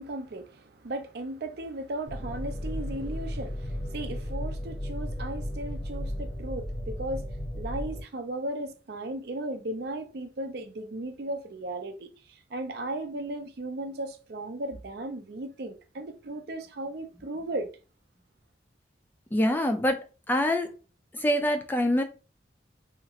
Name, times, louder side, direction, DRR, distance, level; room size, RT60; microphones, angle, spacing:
voice 1, 0.0-7.3 7.5-17.7, right 1 dB, 60° right, 0.5 m, -36 dB
sound 1, 2.1-8.0, equal, 40° left, 0.7 m, -34 dB
voice 2, 19.3-20.0 20.3-20.7 21.1-22.0, left 1 dB, 10° left, 0.3 m, -25 dB
2.8 x 2.4 x 2.8 m
head